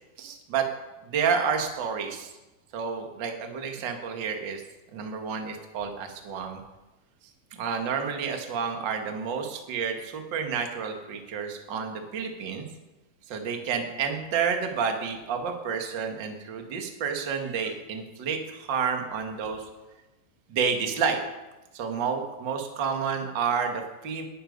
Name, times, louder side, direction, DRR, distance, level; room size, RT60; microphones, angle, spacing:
voice 1, 0.2-0.6 1.1-2.3 2.7-4.6 4.9-6.6 7.6-12.7 13.3-19.6 20.5-21.2 21.7-24.2, right 6 dB, 45° right, 4 dB, 1.7 m, -30 dB
19.0 x 10.5 x 5.4 m, 1.1 s
omnidirectional pair, 4.3 m